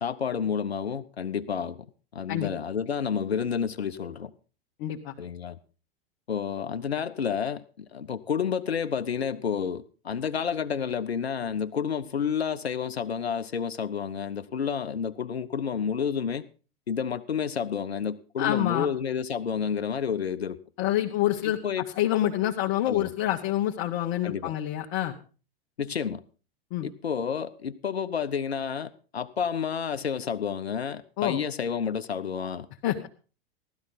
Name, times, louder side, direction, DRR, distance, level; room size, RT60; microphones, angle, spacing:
voice 1, 0.0-1.9 2.1-4.3 5.2-5.6 6.3-16.4 16.9-20.6 21.4-21.9 22.9-23.1 24.2-24.5 25.8-26.2 26.8-32.7, left 7 dB, 90° left, 11 dB, 0.8 m, -30 dB
voice 2, 4.8-5.1 18.4-18.9 20.8-21.6 21.9-25.1 26.7-26.9 31.2-31.4 32.8-33.1, left 13 dB, 50° left, 0 dB, 1.4 m, -27 dB
15.5 x 12.5 x 4.0 m, 0.36 s
hypercardioid pair, 100°, 31 cm